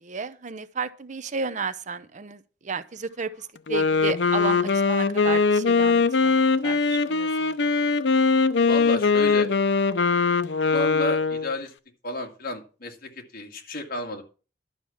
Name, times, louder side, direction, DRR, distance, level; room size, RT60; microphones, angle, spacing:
voice 1, 0.0-7.7, right 5 dB, 45° right, 13 dB, 0.7 m, -33 dB
Wind instrument woodwind instrument, 3.6-11.5, left 4 dB, 75° left, 0.7 m, -21 dB
voice 2, 8.7-9.5 10.7-11.7 12.0-14.2, left 1 dB, 55° left, 3 dB, 2.2 m, -32 dB
11.5 x 6.0 x 7.2 m, 0.35 s
head